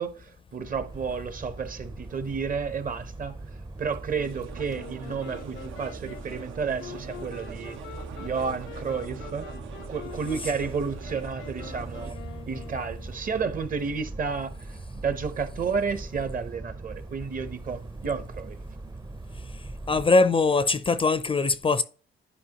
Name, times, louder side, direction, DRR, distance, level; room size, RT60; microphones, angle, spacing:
voice 1, 0.0-3.4 3.8-7.8 8.2-9.5 9.9-12.2 12.5-18.6, right 5 dB, 45° right, 0.9 m, -31 dB
sound 1, 0.6-20.1, right 2 dB, 20° right, 0.6 m, -41 dB
sound 2, 4.2-12.1, right 8 dB, 85° right, 0.8 m, -44 dB
Wind instrument woodwind instrument, 4.7-13.4, left 9 dB, 85° left, 0.8 m, -45 dB
voice 2, 19.9-21.8, left 3 dB, 25° left, 0.4 m, -21 dB
10.0 x 4.5 x 2.9 m
cardioid pair, 90°, 20 cm